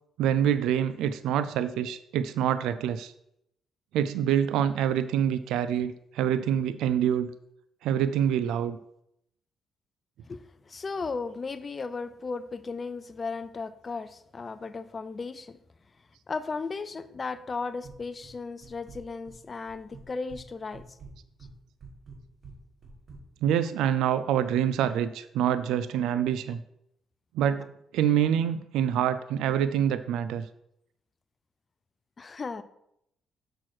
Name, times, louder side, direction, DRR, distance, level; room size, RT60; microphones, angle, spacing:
voice 1, 0.2-3.1 3.9-7.3 7.8-8.8 23.4-26.6 27.3-30.4, right 9 dB, 90° right, 13 dB, 0.4 m, -26 dB
voice 2, 10.3-15.6 16.3-20.9 32.2-32.6, left 4 dB, 35° left, 13 dB, 0.5 m, -35 dB
sound 1, 17.8-18.3 18.6-19.4 19.7-20.4 20.7-23.2, right 4 dB, 50° right, 1.9 m, -47 dB
6.3 x 6.2 x 4.4 m, 0.77 s
cardioid pair, 90°, 0 cm